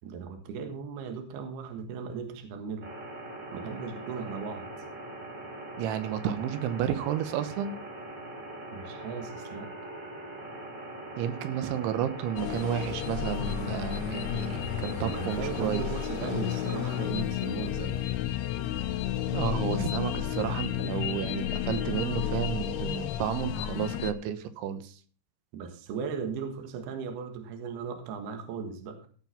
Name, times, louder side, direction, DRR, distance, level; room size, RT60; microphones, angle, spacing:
voice 1, 0.0-2.9 3.5-4.6 8.7-9.7 15.0-18.1 25.5-29.1, right 6 dB, 65° right, 5 dB, 3.3 m, -37 dB
sound 1, 2.8-17.1, right 2 dB, 30° right, 2.8 m, -42 dB
voice 2, 5.8-7.8 11.2-15.8 19.3-24.9, right 9 dB, 90° right, 11 dB, 3.4 m, -32 dB
sound 2, 12.4-24.1, left 12 dB, 75° left, 2.5 m, -32 dB
16.5 x 5.9 x 5.8 m, 0.42 s
omnidirectional pair, 5.3 m